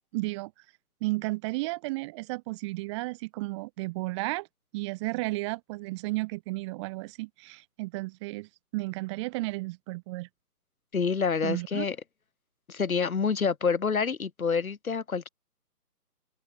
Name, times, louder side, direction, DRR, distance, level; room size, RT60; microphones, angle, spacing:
voice 1, 0.1-0.5 1.0-4.5 4.7-10.3 11.4-11.9, right 23 dB, 20° right, 2.9 m, -33 dB
voice 2, 10.9-12.0 12.7-15.3, left 5 dB, 60° left, 6.8 m, -27 dB
open air
figure-of-eight pair, 155°, 48 cm